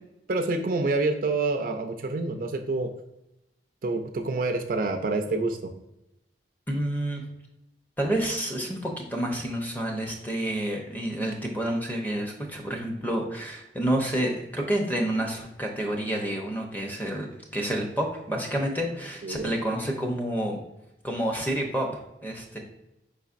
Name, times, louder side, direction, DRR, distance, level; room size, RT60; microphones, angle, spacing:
voice 1, 0.3-2.9 3.8-5.7 19.2-19.5, right 3 dB, 50° right, 6 dB, 0.4 m, -27 dB
voice 2, 6.7-7.2 8.0-20.6 21.0-22.6, right 1 dB, 10° left, 1 dB, 0.6 m, -29 dB
5.0 x 4.0 x 2.4 m, 0.90 s
head